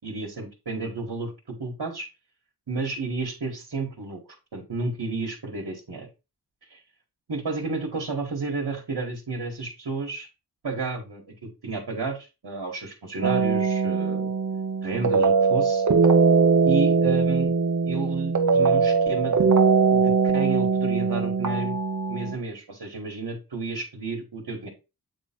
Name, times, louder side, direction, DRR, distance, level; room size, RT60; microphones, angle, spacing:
voice 1, 0.0-2.1 2.7-4.2 4.5-6.1 6.7-6.8 7.3-10.3 10.6-14.3 14.8-15.8 16.6-17.5 17.8-19.5 19.9-21.8 22.1-24.7, right 3 dB, 75° right, 0 dB, 1.7 m, -31 dB
sound 1, 13.2-22.3, right 5 dB, 45° right, 0.8 m, -21 dB
8.7 x 3.1 x 4.4 m, 0.28 s
wide cardioid pair, 75°, 40 cm